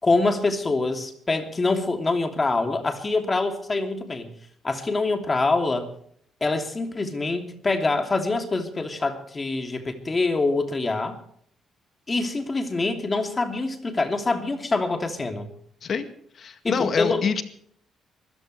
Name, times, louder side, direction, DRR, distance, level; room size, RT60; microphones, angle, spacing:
voice 1, 0.0-4.3 4.6-5.9 6.4-11.2 12.1-15.5 16.6-17.2, left 3 dB, 25° left, 5 dB, 2.8 m, -25 dB
voice 2, 16.3-17.4, left 6 dB, 55° left, 8 dB, 2.0 m, -26 dB
24.5 x 14.5 x 3.3 m, 0.63 s
cardioid pair, 90°, 0 cm